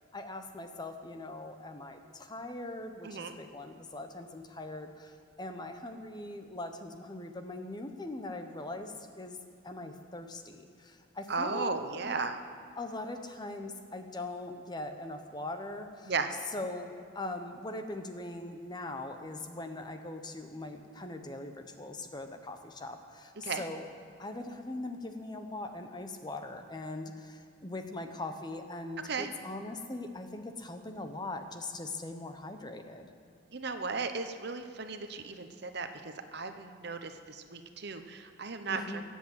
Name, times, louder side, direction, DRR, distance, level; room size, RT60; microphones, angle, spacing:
voice 1, 0.1-9.4 9.6-12.1 12.8-16.1 16.5-23.9 24.2-33.1 38.7-39.0, left 2 dB, 20° left, 6 dB, 0.9 m, -41 dB
voice 2, 3.0-3.3 11.3-12.4 16.1-16.3 23.4-23.6 29.0-29.3 33.5-39.0, right 4 dB, 55° right, 8 dB, 0.9 m, -36 dB
21.0 x 8.3 x 7.9 m, 2.3 s
head